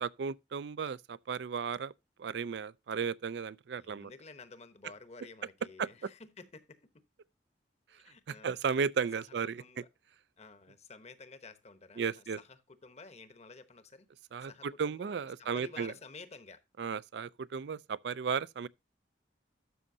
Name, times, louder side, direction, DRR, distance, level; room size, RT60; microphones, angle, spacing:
voice 1, 0.0-1.9 2.2-4.1 5.8-5.9 8.4-9.8 12.0-12.4 14.3-15.9 16.8-18.7, right 6 dB, 65° right, 0.4 m, -34 dB
voice 2, 3.8-6.9 7.9-8.5 9.4-9.9 10.4-14.1 14.4-15.1 15.4-16.6, left 4 dB, 35° left, 1.0 m, -52 dB
12.5 x 6.3 x 2.7 m
head